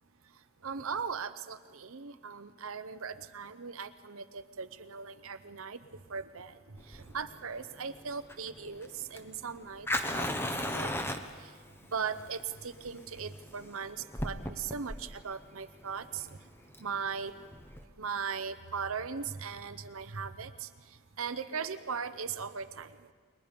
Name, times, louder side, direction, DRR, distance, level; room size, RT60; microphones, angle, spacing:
voice 1, 0.6-5.8 6.1-6.6 6.9-10.5 10.7-10.9 11.4-11.5 11.9-16.4 16.8-17.3 18.0-20.7 21.2-22.9, right 6 dB, 65° right, 11 dB, 0.8 m, -38 dB
Fire, 6.8-17.8, left 1 dB, 10° left, 1.0 m, -38 dB
29.5 x 22.5 x 5.2 m, 1.5 s
head